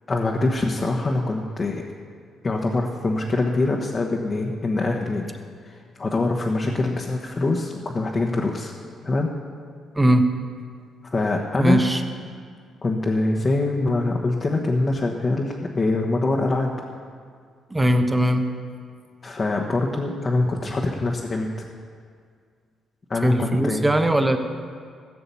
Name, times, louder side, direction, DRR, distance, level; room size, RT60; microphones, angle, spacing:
voice 1, 0.1-1.8 2.4-5.2 5.7-8.7 9.0-9.3 11.1-11.8 12.8-16.7 19.2-21.7 23.1-23.9, left 2 dB, 30° left, -1 dB, 1.1 m, -24 dB
voice 2, 9.9-10.3 11.6-12.0 17.7-18.4 23.2-24.4, right 1 dB, 15° right, 7 dB, 1.0 m, -19 dB
15.5 x 6.8 x 7.0 m, 2.1 s
cardioid pair, 90°, 0 cm